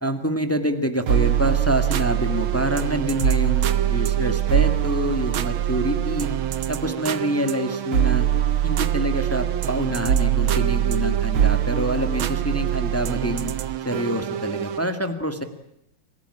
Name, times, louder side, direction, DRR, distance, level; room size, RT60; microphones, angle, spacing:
voice 1, 0.0-6.3 6.7-8.3 8.6-13.5 13.8-15.4, equal, 5° left, 8 dB, 1.7 m, -26 dB
sound 1, 1.1-14.9, right 11 dB, 85° right, 1.9 m, -23 dB
25.5 x 16.0 x 9.9 m, 0.81 s
omnidirectional pair, 2.2 m